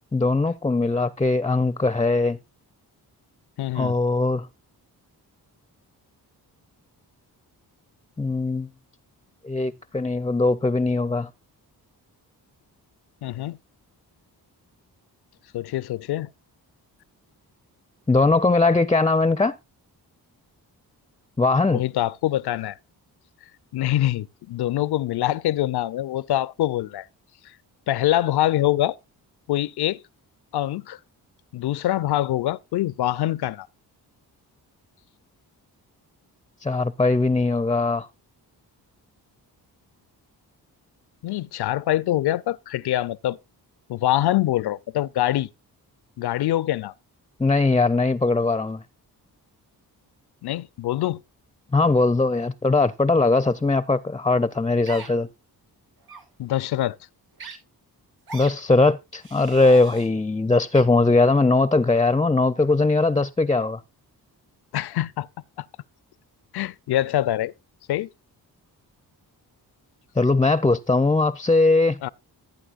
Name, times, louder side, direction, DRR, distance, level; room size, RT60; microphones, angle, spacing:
voice 1, 0.1-2.4 3.7-4.5 8.2-8.7 9.4-11.3 18.1-19.5 21.4-21.8 36.6-38.1 47.4-48.8 51.7-55.3 58.3-63.8 70.2-72.0, left 3 dB, 10° left, 0.4 m, -20 dB
voice 2, 3.6-3.9 13.2-13.6 15.5-16.3 21.7-22.8 23.7-27.1 27.4-27.5 27.9-29.0 29.5-30.0 30.5-31.0 31.5-33.7 41.2-43.4 43.9-45.5 46.2-46.9 50.4-51.2 56.4-57.0 64.7-65.3 65.6-65.7 66.5-67.5 67.9-68.1 72.0-72.1, left 14 dB, 75° left, 0.5 m, -24 dB
sound 1, 54.9-55.1 56.0-56.2 57.4-57.5 58.3-58.5 59.2-60.1 60.7-60.8, right 4 dB, 70° right, 7.6 m, -40 dB
15.0 x 8.6 x 2.4 m
cardioid pair, 85°, 39 cm